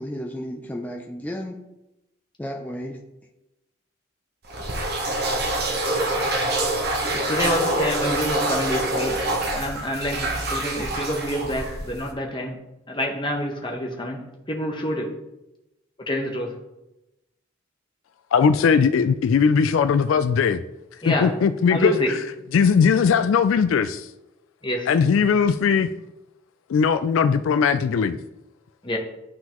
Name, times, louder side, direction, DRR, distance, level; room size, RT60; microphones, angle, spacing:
voice 1, 0.0-1.6 2.4-3.1, equal, 10° left, 1 dB, 0.4 m, -33 dB
sound 1, 4.5-12.1, right 1 dB, 50° right, 1.0 m, -26 dB
voice 2, 7.3-9.2 9.5-12.6 12.9-14.2 14.5-15.1 16.1-16.5 21.0-21.3 21.7-22.1 24.6-24.9 28.8-29.0, equal, 25° left, 1 dB, 0.9 m, -26 dB
voice 3, 18.3-20.6 21.0-22.0 22.5-24.1 24.9-25.9 26.7-28.2, left 6 dB, 75° left, 11 dB, 0.3 m, -19 dB
11.5 x 3.8 x 3.0 m, 0.96 s
head